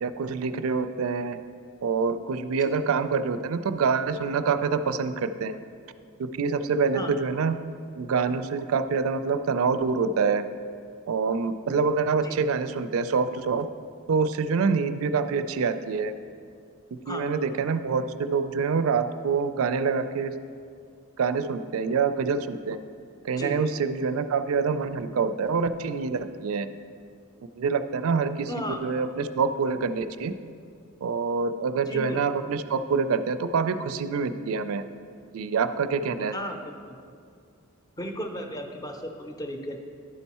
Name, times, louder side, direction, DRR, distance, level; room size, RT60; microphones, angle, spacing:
voice 1, 0.0-1.4 1.8-5.6 6.2-7.6 8.0-10.4 11.1-13.7 14.1-16.1 16.9-20.3 21.2-22.8 23.2-26.7 27.6-28.5 28.8-30.3 31.0-34.8 35.3-36.3, right 5 dB, 75° right, 11 dB, 0.4 m, -26 dB
voice 2, 28.5-28.8 31.9-32.2 36.3-36.9 38.0-39.8, equal, 20° left, 4 dB, 0.6 m, -35 dB
11.0 x 4.5 x 4.2 m, 2.2 s
head